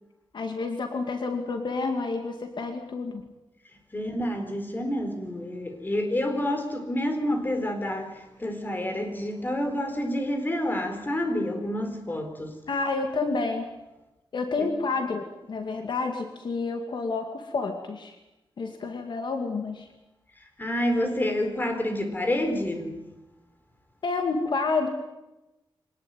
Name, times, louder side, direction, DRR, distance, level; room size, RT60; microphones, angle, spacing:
voice 1, 0.3-3.2 12.7-13.7 14.3-18.1 18.6-19.9 24.0-24.9, left 3 dB, 60° left, 5 dB, 2.4 m, -29 dB
voice 2, 3.9-12.6 14.6-14.7 20.6-23.0, left 1 dB, 20° left, 6 dB, 4.3 m, -28 dB
24.5 x 19.0 x 9.2 m, 0.98 s
wide cardioid pair, 170°, 9 cm